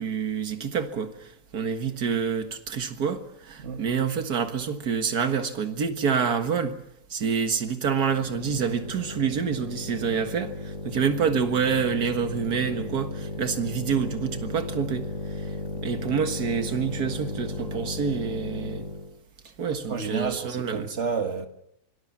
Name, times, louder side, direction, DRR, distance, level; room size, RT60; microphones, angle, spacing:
voice 1, 0.0-6.8 7.1-15.1 15.4-15.6 15.8-18.9 19.6-20.9, right 6 dB, 75° right, 2.2 m, -27 dB
sound 1, 8.0-19.1, left 3 dB, 50° left, 5.1 m, -35 dB
voice 2, 19.9-21.5, right 5 dB, 45° right, 2.1 m, -30 dB
25.0 x 20.0 x 7.3 m
omnidirectional pair, 1.7 m